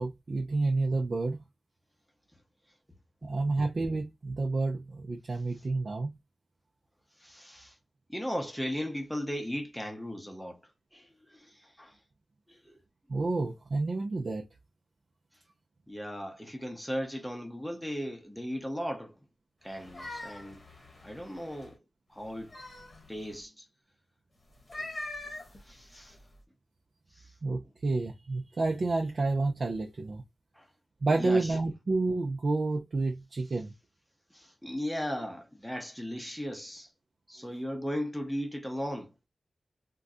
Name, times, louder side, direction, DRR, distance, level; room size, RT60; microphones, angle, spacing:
voice 1, 0.0-1.4 3.2-6.1 13.1-14.4 27.4-30.2 31.0-33.7, right 3 dB, 55° right, 0.6 m, -29 dB
voice 2, 7.2-7.7 8.1-10.6 10.9-11.9 12.5-12.8 15.9-19.1 19.6-20.6 21.0-21.8 22.1-22.5 23.1-23.6 25.7-26.2 27.2-27.3 30.6-30.7 31.1-31.5 34.3-36.9 37.3-39.1, equal, ahead, 0.8 m, -37 dB
sound 1, 19.7-21.7 22.2-23.4 24.5-26.4, left 2 dB, 35° left, 1.0 m, -44 dB
3.6 x 2.3 x 2.6 m
wide cardioid pair, 100°, 0 cm